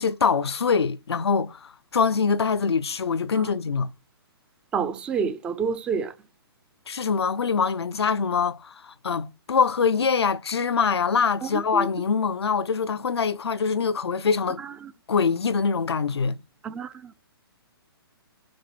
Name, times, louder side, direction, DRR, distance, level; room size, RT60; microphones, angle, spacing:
voice 1, 0.0-3.9 6.9-14.6 15.1-16.4, left 5 dB, 90° left, 0.7 m, -24 dB
voice 2, 4.7-6.1 11.7-11.9 14.8-14.9 16.6-17.3, right 6 dB, 5° right, 0.3 m, -28 dB
5.2 x 3.9 x 5.8 m
hypercardioid pair, 155°, 13 cm